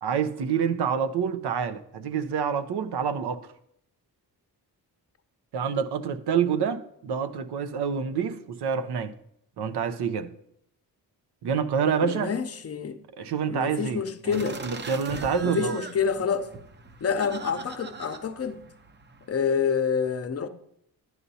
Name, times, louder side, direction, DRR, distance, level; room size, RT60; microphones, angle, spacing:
voice 1, 0.0-3.4 5.5-9.1 9.6-10.3 11.4-12.3 13.1-15.8, right 7 dB, 80° right, 0.7 m, -27 dB
voice 2, 12.0-13.0 13.5-14.6 15.4-16.5 17.0-18.6 19.3-20.5, left 6 dB, 35° left, 0.7 m, -27 dB
sound 1, 14.3-19.5, right 3 dB, 25° right, 0.7 m, -41 dB
11.0 x 9.4 x 2.7 m
cardioid pair, 95°, 39 cm